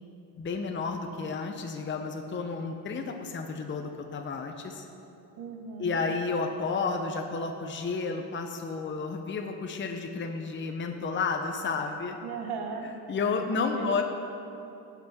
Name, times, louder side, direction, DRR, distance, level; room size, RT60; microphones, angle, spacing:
voice 1, 0.4-4.9 5.8-12.2 13.1-14.0, left 4 dB, 25° left, 4 dB, 0.8 m, -31 dB
voice 2, 5.4-6.0 12.2-13.0 13.7-14.0, right 5 dB, 65° right, 3 dB, 1.6 m, -37 dB
17.5 x 6.1 x 4.3 m, 2.8 s
supercardioid pair, 85°, 42 cm